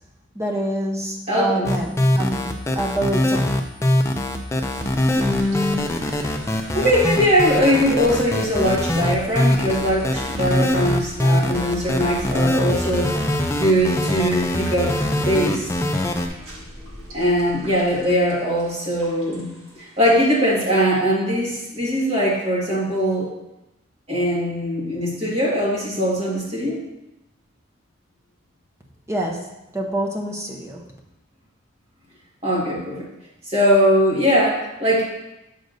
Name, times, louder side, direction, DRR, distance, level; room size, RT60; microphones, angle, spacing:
voice 1, 0.3-3.7 29.1-30.8, right 1 dB, 15° right, 0 dB, 0.8 m, -26 dB
voice 2, 1.3-1.7 5.2-5.9 6.7-13.2 13.5-15.0 15.2-15.7 17.1-19.5 19.8-23.3 24.1-26.8 32.4-33.1 33.5-35.1, equal, 30° right, -5 dB, 1.8 m, -21 dB
sound 1, 1.6-16.3, left 1 dB, 15° left, 0.4 m, -22 dB
sound 2, 4.7-20.8, equal, 80° right, 1.8 m, -40 dB
7.8 x 6.4 x 2.7 m, 0.94 s
head